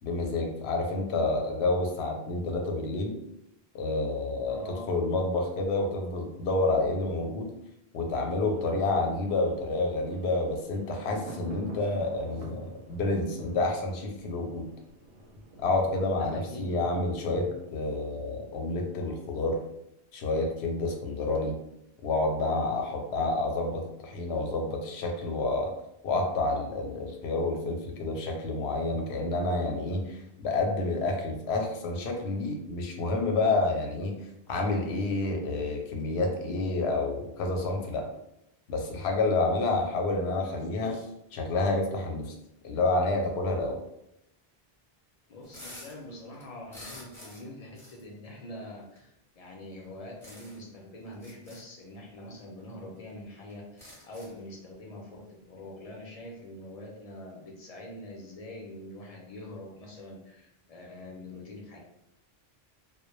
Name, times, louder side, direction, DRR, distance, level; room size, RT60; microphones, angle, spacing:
voice 1, 0.0-3.2 3.7-4.6 4.9-7.5 7.9-14.7 15.6-19.6 20.1-21.6 22.0-25.7 26.0-34.1 34.5-38.1 38.7-41.1 41.3-42.3 42.6-43.8, left 2 dB, 90° left, 2 dB, 0.8 m, -29 dB
voice 2, 4.4-4.9 16.1-16.6 45.3-61.8, left 1 dB, 50° left, -1 dB, 0.5 m, -44 dB
Thunder, 8.3-19.1 19.4-19.5, equal, 85° right, 0.8 m, -47 dB
sound 1, 45.4-46.0 46.3-47.5 47.7-48.0 49.0-49.1 50.2-50.7 51.1-51.6 52.6-52.7 53.0-53.1 53.5-54.4, left 1 dB, 5° left, 0.6 m, -48 dB
2.1 x 2.0 x 3.0 m, 0.84 s
omnidirectional pair, 1.1 m